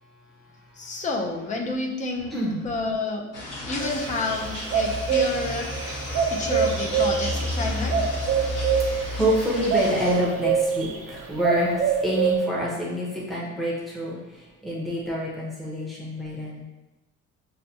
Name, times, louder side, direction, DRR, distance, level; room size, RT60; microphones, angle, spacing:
voice 1, 0.8-2.4 2.6-5.7 6.3-8.1, left 3 dB, 25° left, 2 dB, 0.5 m, -30 dB
sound 1, 3.3-10.2, left 1 dB, 55° left, 1.1 m, -32 dB
sound 2, 3.8-11.1 11.4-12.4, right 6 dB, 45° right, 0.4 m, -25 dB
voice 2, 8.4-16.7, equal, ahead, -6 dB, 0.8 m, -28 dB
5.7 x 2.2 x 2.7 m, 1.1 s
cardioid pair, 145°, 30 cm